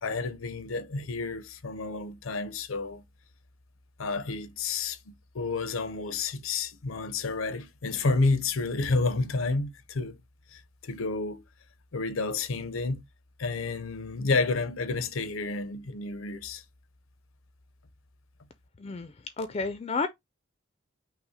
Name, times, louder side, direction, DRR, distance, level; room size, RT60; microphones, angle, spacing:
voice 1, 0.0-3.0 4.0-10.2 10.5-11.4 11.9-13.0 13.4-16.6, left 3 dB, 80° left, 0.6 m, -30 dB
voice 2, 18.8-20.1, left 4 dB, 30° left, 0.4 m, -31 dB
5.7 x 2.1 x 4.1 m
head